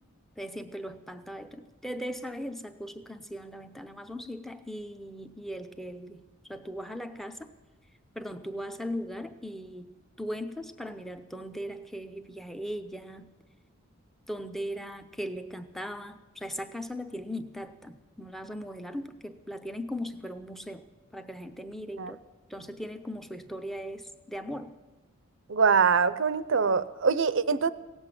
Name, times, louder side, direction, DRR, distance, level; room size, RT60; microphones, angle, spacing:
voice 1, 0.4-6.2 6.5-7.4 8.1-13.3 14.3-20.9 21.1-22.2 22.5-24.7, equal, ahead, 9 dB, 0.7 m, -38 dB
voice 2, 25.5-27.7, right 5 dB, 60° right, 15 dB, 0.6 m, -24 dB
17.0 x 8.0 x 9.7 m, 1.1 s
head